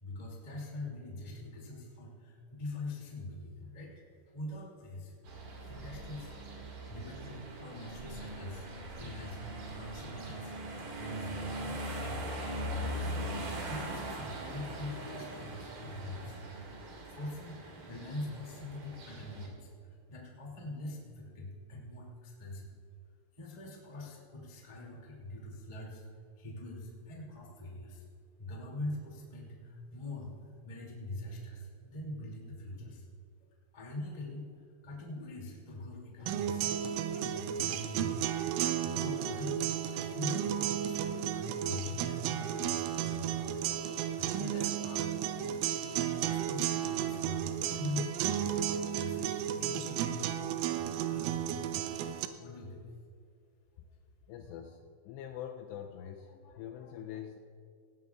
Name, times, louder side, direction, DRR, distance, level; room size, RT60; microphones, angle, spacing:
voice 1, 0.0-5.1 5.6-6.3 6.6-10.6 11.0-12.2 12.5-16.4 17.1-22.7 23.3-26.0 26.4-28.0 28.4-33.1 33.7-38.3 38.8-43.5 43.9-45.1 45.3-45.9 46.2-50.4 50.7-51.9 52.4-52.8, left 2 dB, 20° left, -3 dB, 1.1 m, -43 dB
sound 1, 5.3-19.5, right 1 dB, 50° right, 3.0 m, -41 dB
sound 2, 36.3-52.3, right 10 dB, 85° right, 3.1 m, -33 dB
voice 2, 54.3-57.4, left 9 dB, 85° left, 3 dB, 2.5 m, -44 dB
18.5 x 16.5 x 2.4 m, 2.3 s
omnidirectional pair, 5.6 m